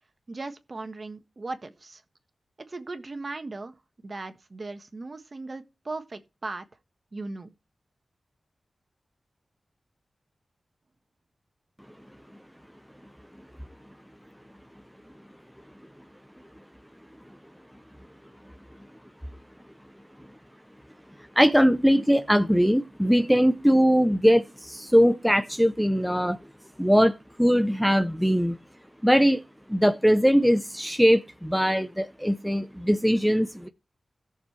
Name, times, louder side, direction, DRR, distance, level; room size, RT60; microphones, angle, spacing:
voice 1, 0.3-2.0 2.7-3.7 4.0-6.6 7.1-7.5, right 3 dB, 45° right, 1.4 m, -37 dB
voice 2, 21.4-26.4 26.8-28.6 29.0-29.4 29.7-33.7, equal, ahead, 0.7 m, -21 dB
17.5 x 6.7 x 3.2 m
wide cardioid pair, 95°, 0 cm